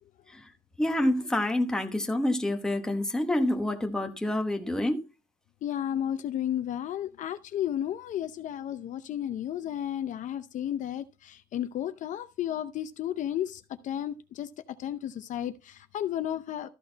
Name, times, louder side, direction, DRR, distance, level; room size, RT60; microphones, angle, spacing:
voice 1, 0.8-5.0, left 1 dB, 5° left, 1.1 m, -27 dB
voice 2, 5.6-14.5 14.8-16.7, left 10 dB, 55° left, 0.6 m, -33 dB
13.5 x 6.3 x 4.0 m
cardioid pair, 165°, 15 cm